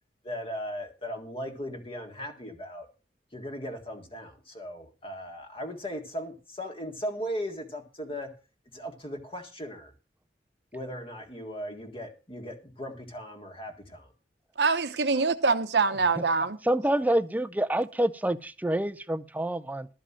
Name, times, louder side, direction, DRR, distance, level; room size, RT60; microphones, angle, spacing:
voice 1, 0.2-2.9 3.3-8.3 8.7-9.9 10.7-14.1 15.1-15.3, equal, 30° left, 1.8 m, -38 dB
voice 2, 14.6-16.6, right 4 dB, 70° right, 0.9 m, -24 dB
voice 3, 16.6-19.9, right 1 dB, 10° right, 0.5 m, -27 dB
13.0 x 5.2 x 7.4 m
head